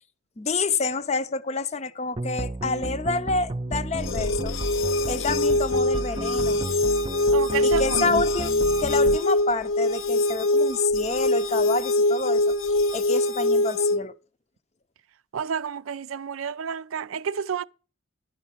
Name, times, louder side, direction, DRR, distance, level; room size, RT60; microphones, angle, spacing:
voice 1, 0.4-4.5 5.1-6.6 7.6-8.5 8.8-12.5 12.9-14.1, left 4 dB, 35° left, 0.6 m, -28 dB
sound 1, 2.2-9.2, right 2 dB, 25° right, 0.5 m, -33 dB
sound 2, 4.0-14.0, left 2 dB, 80° left, 0.6 m, -23 dB
voice 2, 7.3-8.2 15.3-17.6, right 7 dB, 85° right, 0.5 m, -30 dB
11.5 x 5.6 x 7.2 m
head